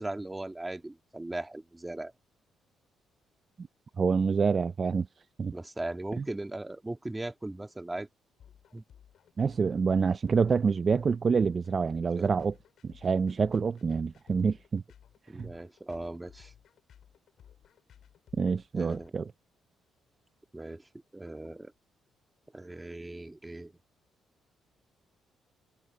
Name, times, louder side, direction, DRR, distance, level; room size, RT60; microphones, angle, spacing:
voice 1, 0.0-2.1 5.5-8.1 8.7-8.8 12.0-12.3 15.3-16.5 18.7-19.3 20.5-21.7 22.5-23.7, right 2 dB, 15° right, 2.0 m, -38 dB
voice 2, 4.0-5.1 5.4-5.5 6.2-6.3 9.4-12.5 12.8-14.8 15.4-15.5 18.3-19.3, right 5 dB, 40° right, 0.4 m, -27 dB
sound 1, 8.4-19.1, left 9 dB, 65° left, 4.7 m, -57 dB
cardioid pair, 90°, 0 cm